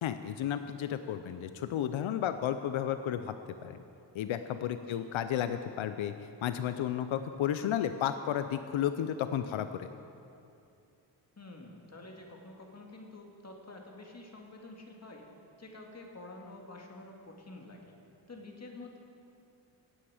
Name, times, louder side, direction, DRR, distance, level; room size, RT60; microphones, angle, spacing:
voice 1, 0.0-3.3 3.6-3.8 4.1-6.1 6.4-9.9, left 10 dB, 90° left, 10 dB, 0.6 m, -32 dB
voice 2, 11.4-15.3 15.6-18.0 18.3-19.0, left 2 dB, 35° left, 1 dB, 1.9 m, -48 dB
17.0 x 8.7 x 4.9 m, 2.7 s
wide cardioid pair, 90°, 46 cm